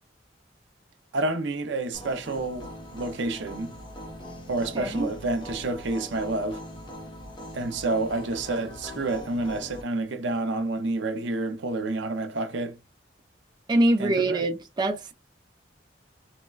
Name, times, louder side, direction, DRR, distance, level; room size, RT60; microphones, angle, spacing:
voice 1, 1.1-3.7 4.5-6.6 7.5-12.8 14.0-14.4, right 2 dB, 70° right, 0.5 m, -29 dB
sound 1, 1.9-9.8, equal, 25° left, 0.7 m, -41 dB
voice 2, 4.7-5.1 13.7-15.1, right 1 dB, 25° right, 0.3 m, -24 dB
3.9 x 2.1 x 2.2 m
head